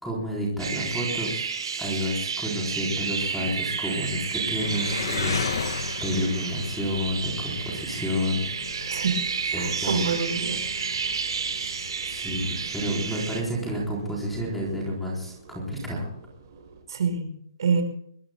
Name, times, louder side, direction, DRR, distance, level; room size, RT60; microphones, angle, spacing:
voice 1, 0.0-1.3 1.8-8.4 8.7-9.0 9.5-10.0 12.1-16.1, equal, ahead, -3 dB, 4.0 m, -30 dB
sound 1, 0.6-13.4, right 6 dB, 80° right, 5.0 m, -31 dB
sound 2, 1.3-16.8, right 3 dB, 30° right, 5.2 m, -51 dB
Engine, 4.6-14.8, left 6 dB, 65° left, 1.6 m, -37 dB
voice 2, 8.9-9.2 9.6-10.6 16.9-17.3 17.6-17.8, right 5 dB, 60° right, 7 dB, 5.1 m, -26 dB
25.0 x 21.5 x 2.2 m, 0.63 s
hypercardioid pair, 175°, 3 cm